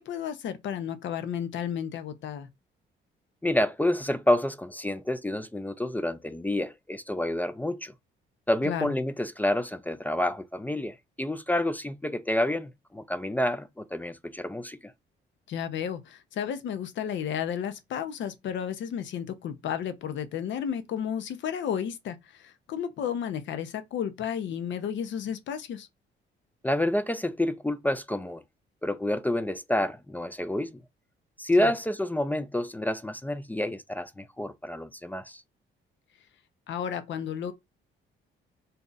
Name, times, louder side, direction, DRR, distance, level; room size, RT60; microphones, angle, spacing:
voice 1, 0.0-2.5 8.6-8.9 15.5-25.9 31.6-31.7 36.7-37.5, left 8 dB, 70° left, 0.6 m, -33 dB
voice 2, 3.4-7.9 8.5-14.9 26.6-28.4 28.8-30.8 31.4-35.4, left 1 dB, 10° left, 0.3 m, -28 dB
2.6 x 2.4 x 3.9 m
cardioid pair, 90°, 20 cm